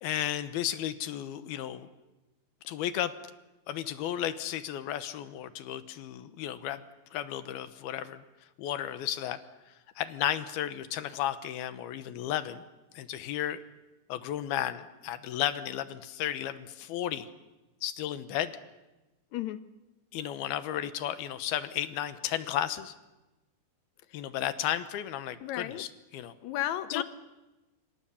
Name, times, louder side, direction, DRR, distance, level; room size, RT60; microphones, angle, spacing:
voice 1, 0.0-1.9 2.6-3.1 3.7-6.8 7.1-8.2 8.6-9.4 10.0-12.6 12.9-13.6 14.1-17.3 17.8-18.5 20.1-22.9 24.1-26.3 26.9-27.0, left 11 dB, 90° left, 12 dB, 3.0 m, -33 dB
voice 2, 25.4-25.8 26.4-27.0, left 13 dB, 65° left, 11 dB, 1.9 m, -33 dB
27.0 x 25.0 x 7.2 m, 1.0 s
omnidirectional pair, 4.4 m